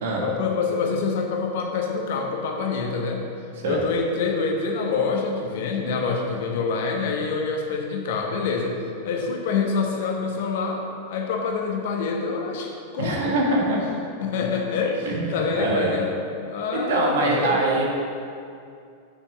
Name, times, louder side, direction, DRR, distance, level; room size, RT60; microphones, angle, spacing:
voice 1, 0.2-3.3 3.6-8.8 9.0-10.8 11.1-13.4 14.2-17.6, left 5 dB, 55° left, 2 dB, 1.1 m, -26 dB
voice 2, 13.0-13.8 15.1-15.9 16.9-17.8, right 2 dB, 55° right, -1 dB, 1.6 m, -23 dB
6.9 x 5.8 x 5.8 m, 2.4 s
figure-of-eight pair, 90°, 0 cm